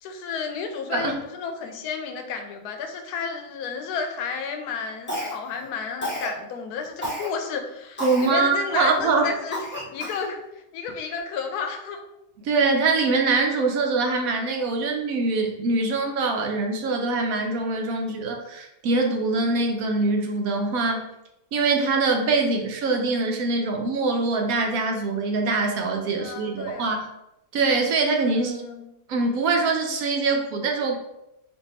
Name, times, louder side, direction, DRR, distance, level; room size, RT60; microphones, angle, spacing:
voice 1, 0.0-10.4 10.7-12.0 26.2-27.0 28.3-28.8, left 5 dB, 85° left, 5 dB, 1.1 m, -32 dB
Cough, 5.1-5.6 6.0-6.4 7.0-7.3 8.0-8.3 8.8-8.9 9.5-10.3, equal, 10° left, 0.6 m, -31 dB
voice 2, 8.0-9.3 12.4-21.1 21.5-27.1 27.5-28.6 29.1-31.0, right 3 dB, 70° right, 3 dB, 1.0 m, -23 dB
3.4 x 2.6 x 4.0 m, 0.87 s
omnidirectional pair, 1.6 m